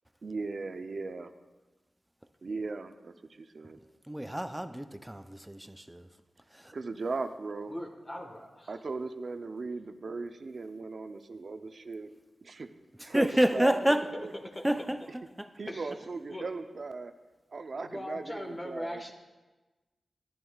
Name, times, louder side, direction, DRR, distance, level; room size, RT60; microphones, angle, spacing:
voice 1, 0.2-1.3 2.4-3.8 6.7-7.7 8.7-12.1 12.4-12.7 13.0-14.3 15.6-17.1 17.5-19.1, right 3 dB, 60° right, 0.6 m, -38 dB
voice 2, 4.1-6.1 6.5-6.7 13.0-14.1 14.6-15.0 15.4-15.5, right 1 dB, 10° right, 0.5 m, -28 dB
voice 3, 7.7-8.8 13.3-13.6 14.5-14.6 15.7-15.9 16.3-16.5 17.8-19.1, left 1 dB, 30° left, 1.4 m, -40 dB
13.5 x 11.0 x 2.4 m
cardioid pair, 55°, 0 cm